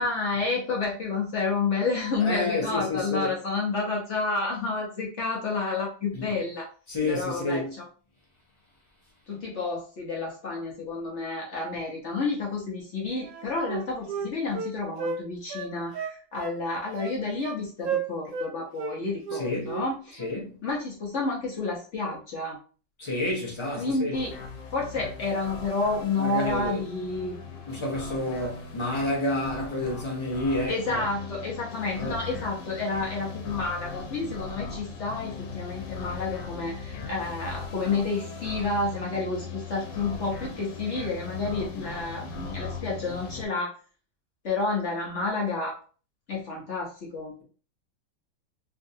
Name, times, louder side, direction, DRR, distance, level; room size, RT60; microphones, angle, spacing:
voice 1, 0.0-6.7 7.1-7.9 9.3-20.2 20.6-22.6 23.8-24.3 24.7-27.4 30.7-43.7 44.4-45.8 46.3-47.3, left 3 dB, 55° left, 0.9 m, -30 dB
voice 2, 2.2-3.3 6.1-6.3 6.9-7.7 19.3-19.7 20.2-20.5 23.0-24.1 26.2-26.8 27.7-31.0 32.0-32.2, left 2 dB, 30° left, 0.5 m, -29 dB
Wind instrument woodwind instrument, 13.2-15.2 15.5-16.6 17.0-17.6 17.8-18.5 18.8-19.0 19.2-19.9 20.1-20.4, right 6 dB, 65° right, 0.8 m, -33 dB
sound 1, 24.1-43.5, left 4 dB, 90° left, 1.4 m, -39 dB
3.5 x 2.5 x 2.7 m
omnidirectional pair, 1.9 m